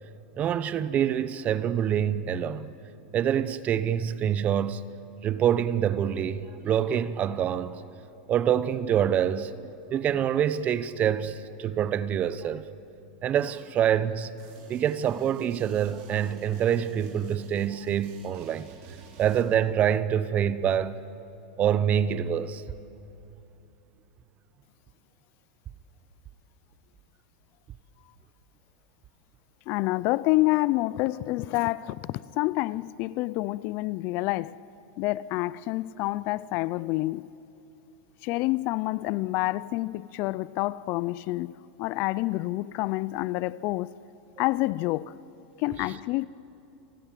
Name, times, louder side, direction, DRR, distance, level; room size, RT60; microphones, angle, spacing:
voice 1, 0.4-2.7 3.1-4.8 5.2-7.8 8.3-9.5 9.9-12.7 13.2-14.3 14.7-18.7 19.2-21.0 21.6-22.6, right 9 dB, 30° right, 0.9 m, -26 dB
sound 1, 14.4-19.4, right 5 dB, 50° right, 4.8 m, -51 dB
voice 2, 29.7-34.6 35.0-37.3 38.2-41.5 41.8-43.9 44.4-45.1 45.6-46.3, left 19 dB, 45° left, 0.5 m, -28 dB
30.0 x 20.0 x 7.5 m
supercardioid pair, 130°, 5 cm